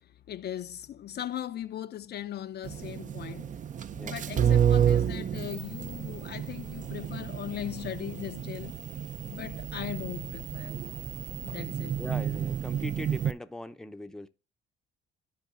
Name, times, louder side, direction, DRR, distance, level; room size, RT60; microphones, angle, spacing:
voice 1, 0.3-3.6 4.0-8.8 9.2-10.8 11.4-12.0, left 11 dB, 55° left, 0.5 m, -39 dB
sound 1, 2.6-13.3, right 8 dB, 40° right, 0.5 m, -30 dB
voice 2, 12.0-14.3, left 1 dB, 5° left, 0.6 m, -40 dB
13.5 x 4.6 x 2.4 m
cardioid pair, 90°, 20 cm